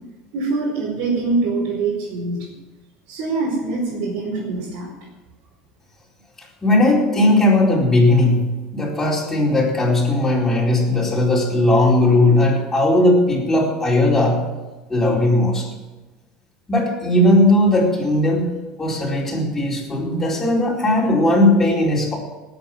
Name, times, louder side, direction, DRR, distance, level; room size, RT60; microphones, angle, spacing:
voice 1, 0.3-2.5 3.1-4.9, right 3 dB, 65° right, -5 dB, 5.2 m, -24 dB
voice 2, 6.6-8.5 8.7-14.4 14.9-15.7 16.7-18.5 18.8-22.2, left 1 dB, 10° left, -5 dB, 4.4 m, -17 dB
18.0 x 8.0 x 7.7 m, 1.2 s
cardioid pair, 150°, 2 cm